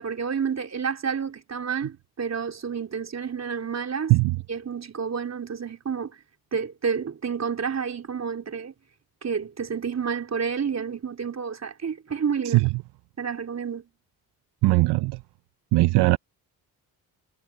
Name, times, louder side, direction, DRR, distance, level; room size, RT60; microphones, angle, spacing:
voice 1, 0.0-4.1 4.5-6.2 6.5-8.7 9.2-12.7 13.2-13.8, right 6 dB, 40° right, 3.6 m, -30 dB
voice 2, 14.6-15.2 15.7-16.2, right 21 dB, 80° right, 0.6 m, -19 dB
cardioid pair, 80°, 40 cm